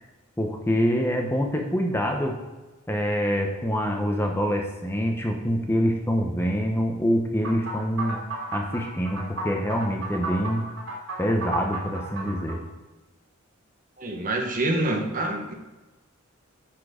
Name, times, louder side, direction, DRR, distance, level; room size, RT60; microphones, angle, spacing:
voice 1, 0.4-2.4 2.9-8.2 8.5-10.7 11.2-12.6, equal, 10° left, 2 dB, 0.8 m, -25 dB
sound 1, 7.4-12.6, right 2 dB, 85° right, 2.9 m, -33 dB
voice 2, 14.0-15.5, right 1 dB, 40° right, 2 dB, 1.1 m, -26 dB
11.0 x 4.5 x 5.1 m, 1.1 s
head